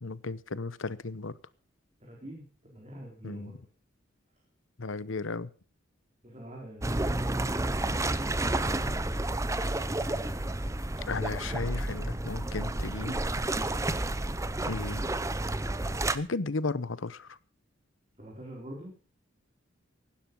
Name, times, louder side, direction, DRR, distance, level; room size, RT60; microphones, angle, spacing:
voice 1, 0.0-1.3 3.2-3.6 4.8-5.5 11.1-13.4 14.7-15.0 16.1-17.4, left 3 dB, 75° left, 0.9 m, -34 dB
voice 2, 2.0-3.6 6.2-7.4 8.1-9.0 18.2-18.9, right 1 dB, 30° right, 4.3 m, -45 dB
sound 1, 6.8-16.2, right 2 dB, 15° right, 0.7 m, -31 dB
sound 2, 8.3-16.2, left 1 dB, 25° left, 1.0 m, -47 dB
16.5 x 12.0 x 5.4 m
head